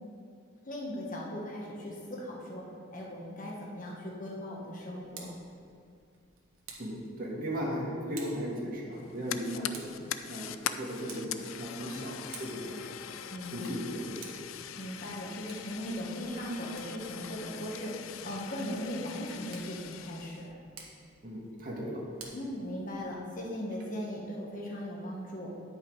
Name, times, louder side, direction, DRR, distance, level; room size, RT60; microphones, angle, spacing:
voice 1, 0.6-2.6 2.9-5.3 9.3-9.6 11.8-12.1 13.3-13.8 14.8-20.6 22.3-25.5, equal, 40° left, -2 dB, 1.3 m, -38 dB
Tick, 4.8-23.3, right 5 dB, 80° right, 1.3 m, -54 dB
voice 2, 6.8-9.9 10.3-10.5 10.8-12.9 13.5-14.2 21.2-22.0, equal, 45° right, -4 dB, 1.7 m, -37 dB
Fire, 8.9-20.5, left 9 dB, 75° left, 0.4 m, -42 dB
9.3 x 5.7 x 4.7 m, 2.4 s
head